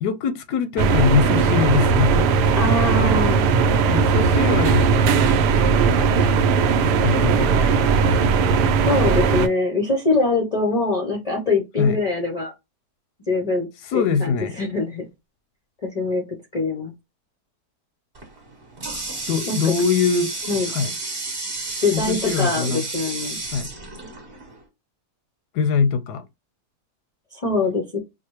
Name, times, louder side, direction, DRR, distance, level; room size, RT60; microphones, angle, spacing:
voice 1, 0.0-2.3 3.9-5.0 5.8-6.2 7.0-8.0 11.8-12.0 13.9-14.6 19.3-20.3 20.7-20.9 21.9-22.8 23.5-23.7 25.5-26.2, left 5 dB, 85° left, 1.2 m, -22 dB
sound 1, 0.8-9.5, right 5 dB, 85° right, 1.2 m, -18 dB
voice 2, 2.5-3.5 8.8-12.5 13.3-15.1 15.8-16.9 19.5-19.7 20.5-20.7 21.8-23.4 27.3-28.0, left 3 dB, 55° left, 0.4 m, -23 dB
Water tap faucet, 18.1-24.6, right 3 dB, 35° right, 1.3 m, -31 dB
4.8 x 2.0 x 3.0 m
omnidirectional pair, 1.7 m